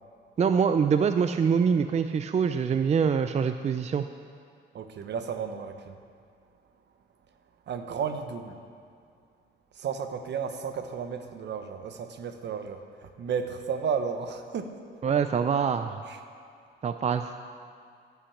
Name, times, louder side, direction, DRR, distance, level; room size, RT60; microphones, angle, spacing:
voice 1, 0.4-4.1 15.0-16.0 16.8-17.3, right 6 dB, 35° right, 9 dB, 0.4 m, -24 dB
voice 2, 4.7-6.0 7.3-7.4 7.7-8.7 9.7-14.8 16.1-16.2, right 6 dB, 60° right, 7 dB, 1.0 m, -33 dB
15.0 x 5.9 x 7.2 m, 2.3 s
cardioid pair, 90°, 20 cm